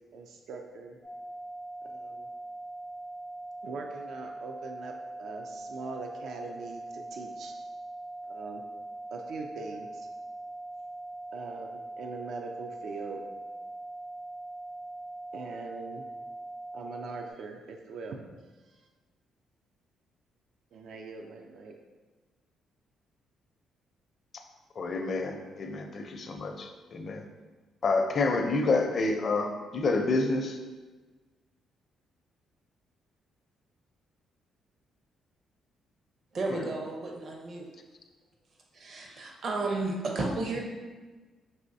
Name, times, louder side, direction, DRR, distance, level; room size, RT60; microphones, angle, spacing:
voice 1, 0.1-1.0 1.8-2.3 3.6-7.5 8.2-8.6 9.1-10.1 11.3-13.2 15.3-16.1 16.7-18.2 18.6-18.9 20.7-21.7, right 4 dB, 70° right, 3 dB, 0.4 m, -42 dB
sound 1, 1.0-17.3, right 2 dB, 90° right, 1.4 m, -42 dB
voice 2, 24.8-27.3 27.8-30.6 36.5-36.7, left 3 dB, 50° left, 5 dB, 0.5 m, -28 dB
voice 3, 36.3-37.7 38.7-40.6, right 3 dB, 50° right, 0 dB, 0.8 m, -33 dB
5.5 x 3.1 x 2.7 m, 1.3 s
cardioid pair, 90°, 0 cm